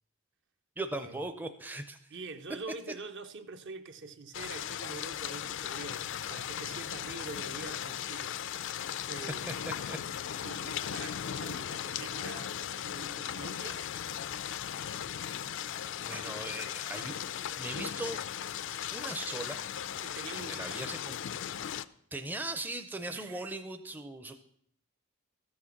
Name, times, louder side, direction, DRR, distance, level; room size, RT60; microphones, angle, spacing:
voice 1, 0.8-2.0 9.9-10.0 16.0-17.2 17.6-18.2 18.9-19.6 20.3-21.2 22.1-24.4, right 2 dB, 10° right, 0.5 m, -39 dB
voice 2, 2.1-8.7 9.1-9.9 10.4-13.9 16.1-16.4 20.0-20.9 23.1-23.5, right 3 dB, 55° right, 0.8 m, -45 dB
sound 1, 4.3-21.8, left 10 dB, 55° left, 0.4 m, -37 dB
14.0 x 6.3 x 5.8 m
head